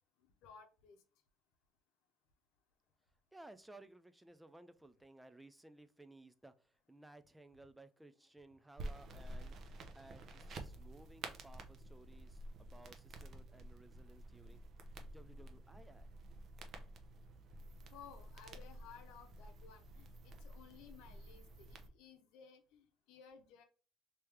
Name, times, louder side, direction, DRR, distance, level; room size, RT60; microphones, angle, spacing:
voice 1, 0.4-1.0 17.9-23.6, left 7 dB, 80° left, 0.8 m, -58 dB
voice 2, 3.1-16.1, right 2 dB, 5° right, 0.4 m, -59 dB
sound 1, 8.8-21.9, right 2 dB, 50° right, 0.7 m, -51 dB
3.1 x 2.9 x 3.4 m
cardioid pair, 110°, 0 cm